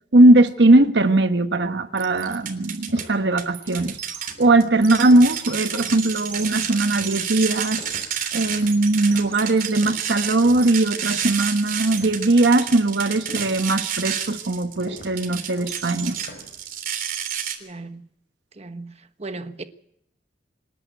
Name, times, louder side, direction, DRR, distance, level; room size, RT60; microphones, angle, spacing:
voice 1, 0.1-4.0 4.4-7.8 8.3-16.2, right 2 dB, 70° right, 1.2 m, -19 dB
sound 1, 1.9-2.0 2.4-10.8 11.1-11.5 11.9-16.6, equal, 60° left, 7.9 m, -44 dB
sound 2, 2.0-3.0 3.4-17.6, right 8 dB, 55° right, 3.4 m, -30 dB
voice 2, 17.6-18.0 18.6-18.9 19.2-19.6, right 3 dB, 35° right, 1.3 m, -35 dB
26.5 x 11.0 x 9.3 m
head